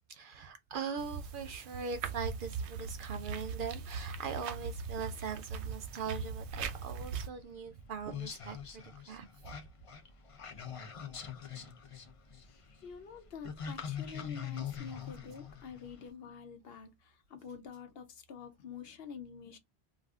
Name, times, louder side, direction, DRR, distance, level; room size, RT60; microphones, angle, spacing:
voice 1, 0.1-9.6, right 6 dB, 60° right, 0.6 m, -41 dB
sound 1, 1.0-7.3, right 5 dB, 90° right, 0.9 m, -40 dB
sound 2, 6.5-16.1, left 8 dB, 40° left, 0.5 m, -44 dB
voice 2, 12.4-19.6, left 6 dB, 65° left, 0.8 m, -48 dB
2.5 x 2.4 x 3.5 m
omnidirectional pair, 1.1 m